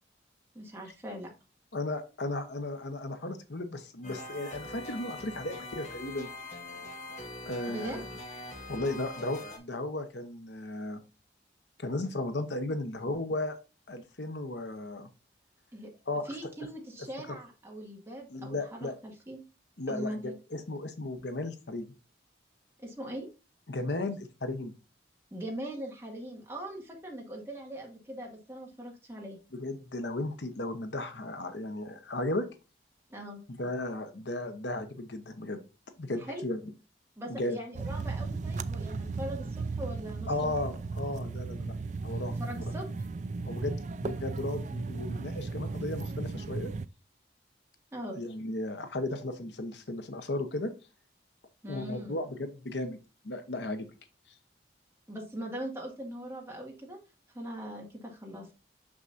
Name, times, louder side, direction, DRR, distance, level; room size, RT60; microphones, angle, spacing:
voice 1, 0.5-1.3 7.7-8.0 15.7-15.9 16.2-19.4 19.9-20.3 22.8-23.3 25.3-29.4 33.1-33.4 36.2-36.4 37.2-40.5 42.4-43.1 47.9-48.2 51.6-52.2 55.1-57.0 57.3-58.5, right 1 dB, 15° right, -1 dB, 1.9 m, -41 dB
voice 2, 1.7-6.3 7.5-8.1 8.7-11.0 11.8-13.6 13.9-15.1 16.1-16.3 18.3-18.9 19.8-21.9 23.7-24.7 29.5-32.5 33.5-35.6 36.0-36.6 37.3-37.6 40.3-41.7 42.0-42.3 43.5-46.7 48.1-50.7 51.7-53.0 53.2-53.9, left 2 dB, 80° left, 8 dB, 1.0 m, -35 dB
sound 1, 4.0-9.6, left 2 dB, 40° left, 1.5 m, -43 dB
sound 2, 37.7-46.9, right 3 dB, 40° right, 0.3 m, -35 dB
6.4 x 6.0 x 2.6 m, 0.30 s
head